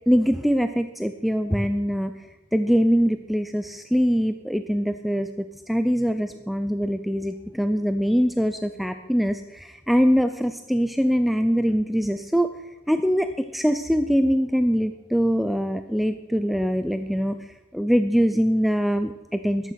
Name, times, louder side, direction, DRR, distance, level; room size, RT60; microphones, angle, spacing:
voice 1, 0.1-2.1 2.5-12.5 12.9-19.7, equal, ahead, 9 dB, 0.4 m, -23 dB
14.5 x 11.5 x 5.8 m, 1.1 s
head